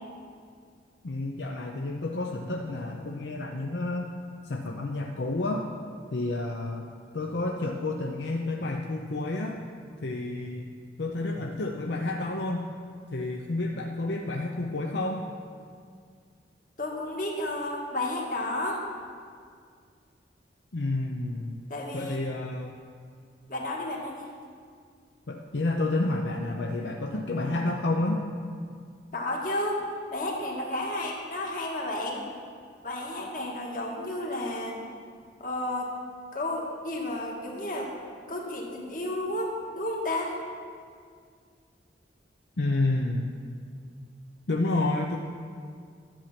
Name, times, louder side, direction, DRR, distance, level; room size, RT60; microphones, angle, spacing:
voice 1, 1.0-4.1 4.4-5.7 6.1-6.8 7.1-9.6 10.0-10.7 11.0-12.7 13.1-15.2 20.7-21.6 21.9-22.8 25.3-28.3 42.6-43.3 44.5-45.2, left 2 dB, 70° left, 1 dB, 0.7 m, -30 dB
voice 2, 16.8-18.8 21.7-22.3 23.5-24.3 29.1-29.8 30.1-32.3 32.8-34.8 35.4-35.9 36.3-37.9 38.3-40.3, left 1 dB, 45° left, -1 dB, 1.7 m, -32 dB
11.5 x 8.4 x 5.9 m, 2.1 s
head